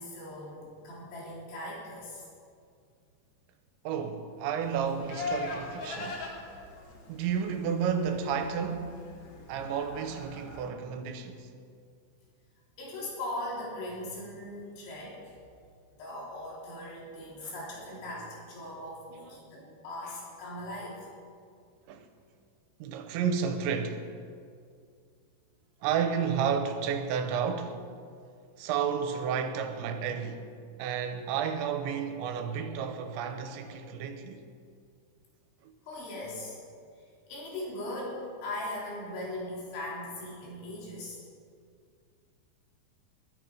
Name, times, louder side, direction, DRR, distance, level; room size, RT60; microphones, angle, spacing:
voice 1, 0.0-2.2 12.8-15.3 15.9-21.0 35.8-36.6 37.3-41.2, left 1 dB, 80° left, 5.9 m, -39 dB
voice 2, 3.8-6.3 7.1-9.0 9.5-11.5 17.4-17.5 19.5-19.6 21.9-22.1 22.8-24.1 25.8-27.9 28.6-30.5 30.8-34.4 35.6-35.7, right 7 dB, 90° right, 3.2 m, -31 dB
Livestock farm animals working animals, 4.6-10.7, left 3 dB, 55° left, 2.1 m, -41 dB
21.5 x 10.0 x 5.0 m
omnidirectional pair, 5.2 m